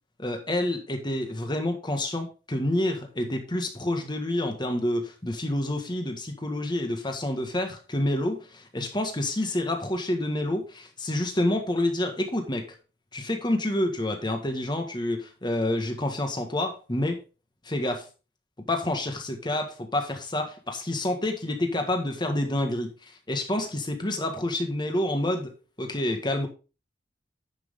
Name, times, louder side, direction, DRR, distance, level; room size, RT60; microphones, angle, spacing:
voice 1, 0.2-12.6 13.1-17.2 17.6-18.0 18.7-22.9 23.3-25.5 25.8-26.5, left 1 dB, 25° left, 4 dB, 1.7 m, -28 dB
10.5 x 6.1 x 3.7 m, 0.33 s
head